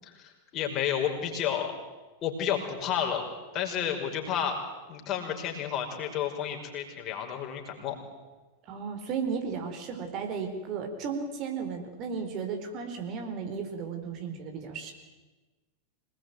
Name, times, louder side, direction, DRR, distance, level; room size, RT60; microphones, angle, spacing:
voice 1, 0.0-1.7 2.2-3.3 3.5-4.6 4.9-8.0, left 9 dB, 35° left, 2 dB, 5.4 m, -31 dB
voice 2, 8.6-14.9, right 5 dB, 40° right, 4 dB, 4.5 m, -34 dB
26.0 x 20.0 x 9.5 m, 1.2 s
figure-of-eight pair, 90°, 0 cm